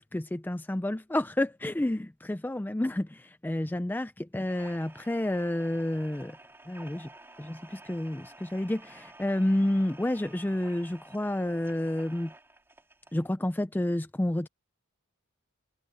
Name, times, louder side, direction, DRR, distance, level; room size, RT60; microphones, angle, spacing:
voice 1, 0.1-6.4 6.7-7.1 7.4-12.3 13.1-14.5, left 1 dB, 10° left, 0.4 m, -30 dB
sound 1, 4.3-13.3, right 2 dB, 10° right, 3.9 m, -52 dB
head